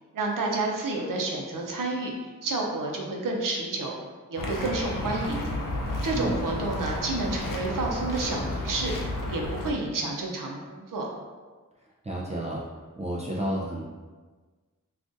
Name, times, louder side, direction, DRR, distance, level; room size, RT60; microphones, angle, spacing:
voice 1, 0.1-2.1 2.4-4.0 4.3-5.5 6.0-8.9 9.3-11.1, right 2 dB, 80° right, 0 dB, 0.6 m, -30 dB
sound 1, 4.4-9.7, left 1 dB, 75° left, 0.6 m, -32 dB
voice 2, 12.0-12.6 13.0-13.8, right 1 dB, 20° right, -5 dB, 0.4 m, -30 dB
3.7 x 2.4 x 2.5 m, 1.4 s
wide cardioid pair, 85°, 32 cm